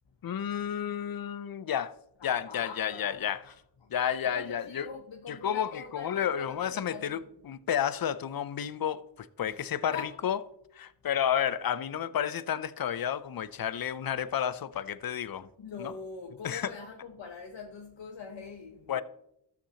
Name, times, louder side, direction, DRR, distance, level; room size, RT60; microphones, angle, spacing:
voice 1, 0.2-1.9 2.2-3.4 3.9-4.9 5.3-7.2 7.4-10.0 10.2-10.4 10.7-15.5 15.8-15.9 16.4-16.7 18.9-19.0, left 9 dB, 55° left, 0.6 m, -31 dB
voice 2, 2.2-3.5 3.8-3.9 4.2-7.3 9.4-9.6 9.9-10.1 13.7-14.0 15.6-19.0, left 5 dB, 90° left, 0.9 m, -44 dB
13.0 x 7.1 x 2.8 m
cardioid pair, 45°, 43 cm